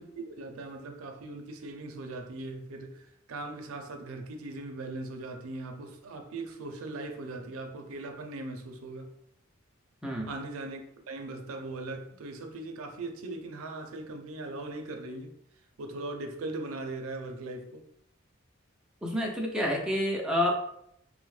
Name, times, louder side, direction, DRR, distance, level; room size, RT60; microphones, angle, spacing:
voice 1, 0.0-9.1 10.3-10.8 11.1-15.3 15.8-17.9, right 2 dB, 85° right, 0.5 m, -39 dB
voice 2, 19.0-20.6, left 1 dB, 5° right, 0.4 m, -28 dB
3.5 x 2.1 x 3.1 m
head